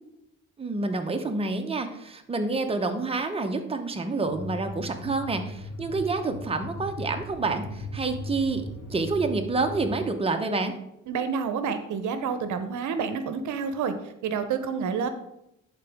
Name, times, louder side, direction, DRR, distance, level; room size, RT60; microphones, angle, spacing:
voice 1, 0.6-8.6 8.9-10.7, right 3 dB, 20° right, 5 dB, 0.8 m, -28 dB
sound 1, 4.3-10.0, left 1 dB, 80° left, 1.6 m, -38 dB
voice 2, 11.1-13.9 14.2-15.1, right 6 dB, 75° right, 10 dB, 0.7 m, -28 dB
11.0 x 4.0 x 3.5 m, 0.82 s
cardioid pair, 90°, 30 cm